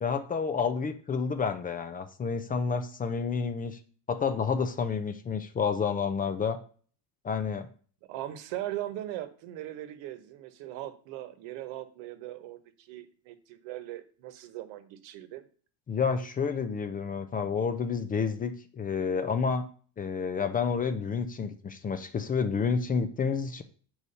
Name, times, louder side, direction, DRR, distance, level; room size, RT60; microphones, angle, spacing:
voice 1, 0.0-3.8 4.1-6.6 7.2-7.7 15.9-19.7 20.0-23.6, left 5 dB, 20° left, 9 dB, 0.5 m, -29 dB
voice 2, 8.1-15.4, right 14 dB, 90° right, 11 dB, 1.1 m, -39 dB
8.3 x 4.7 x 5.5 m, 0.43 s
cardioid pair, 170°, 44 cm